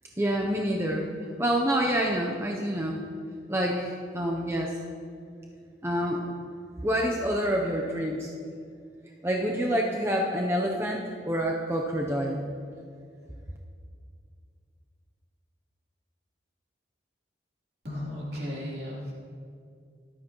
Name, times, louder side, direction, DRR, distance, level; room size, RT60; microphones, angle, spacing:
voice 1, 0.2-1.1 1.4-3.0 3.5-4.7 5.8-6.3 6.8-8.3 9.2-12.6, equal, 15° right, -1 dB, 0.7 m, -27 dB
voice 2, 17.8-19.1, left 1 dB, 60° right, -5 dB, 3.2 m, -35 dB
14.0 x 12.0 x 3.0 m, 2.3 s
head